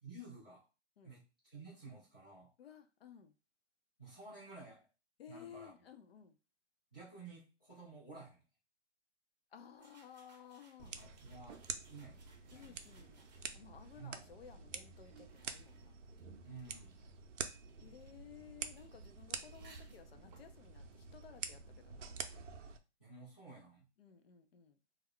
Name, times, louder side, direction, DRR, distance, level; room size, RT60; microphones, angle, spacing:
voice 1, 0.0-0.7 1.0-2.5 4.0-4.9 5.3-5.7 6.9-8.4 10.8-12.2 12.5-12.8 14.0-14.2 16.4-16.9 23.0-23.8, right 3 dB, 5° left, 0.4 m, -53 dB
voice 2, 2.6-3.3 5.2-6.4 9.5-11.0 12.5-16.0 17.8-22.2 24.0-24.8, left 8 dB, 55° left, 0.6 m, -57 dB
sound 1, 9.7-13.8 14.5-21.9, right 3 dB, 40° right, 0.6 m, -68 dB
sound 2, 10.8-22.8, right 6 dB, 90° right, 0.5 m, -48 dB
2.3 x 2.2 x 3.5 m
hypercardioid pair, 160°, 35 cm